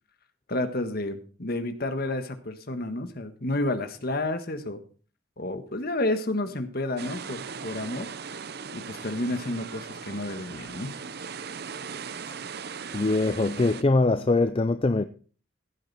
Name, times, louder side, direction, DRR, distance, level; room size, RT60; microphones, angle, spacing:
voice 1, 0.5-4.8 5.4-8.1 8.7-11.0, left 2 dB, 50° left, 1.5 m, -30 dB
sound 1, 7.0-13.8, right 6 dB, 55° right, 0.7 m, -38 dB
voice 2, 12.9-15.0, left 2 dB, 30° left, 0.4 m, -23 dB
15.5 x 8.9 x 4.2 m
head